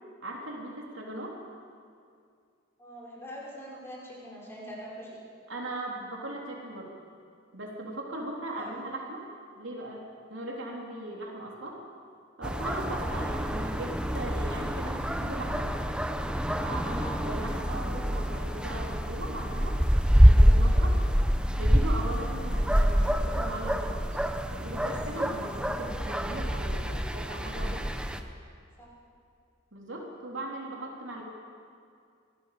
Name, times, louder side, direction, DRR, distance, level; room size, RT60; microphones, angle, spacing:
voice 1, 0.2-1.4 5.5-7.0 7.5-9.2 9.6-11.8 12.4-15.7 16.6-19.8 20.1-21.0 21.6-24.0 24.5-27.9 29.7-31.2, right 1 dB, 65° right, -1 dB, 3.7 m, -38 dB
voice 2, 2.8-5.2 8.5-8.8 13.1-13.3 16.8-17.1 25.1-26.0 28.8-28.9, equal, 10° left, -5 dB, 5.8 m, -44 dB
sound 1, 12.4-28.2, equal, 5° right, 1.0 m, -26 dB
25.5 x 18.0 x 6.9 m, 2.3 s
head